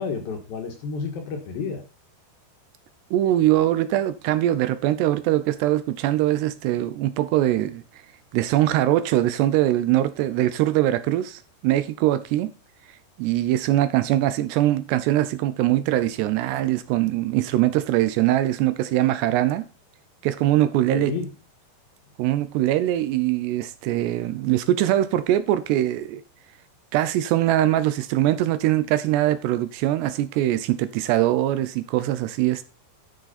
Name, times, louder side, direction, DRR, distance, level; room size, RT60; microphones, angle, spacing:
voice 1, 0.0-1.8 20.9-21.3, left 5 dB, 65° left, 2.9 m, -30 dB
voice 2, 3.1-7.8 8.3-12.5 13.2-19.6 20.2-21.1 22.2-26.2 26.9-32.6, right 14 dB, 80° right, 2.7 m, -22 dB
12.0 x 6.6 x 4.2 m
omnidirectional pair, 5.1 m